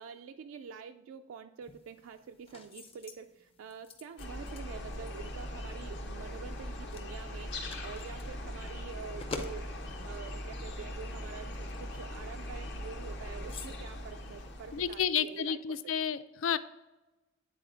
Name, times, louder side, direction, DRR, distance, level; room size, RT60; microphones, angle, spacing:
voice 1, 0.0-9.7 10.0-15.9, right 6 dB, 80° right, 7 dB, 0.3 m, -46 dB
sound 1, 1.6-15.4, left 3 dB, 30° left, 0.6 m, -51 dB
sound 2, 4.2-15.1, left 1 dB, 60° left, 0.9 m, -41 dB
voice 2, 14.7-16.6, left 8 dB, 80° left, 15 dB, 0.4 m, -31 dB
8.5 x 4.1 x 3.8 m, 1.1 s
head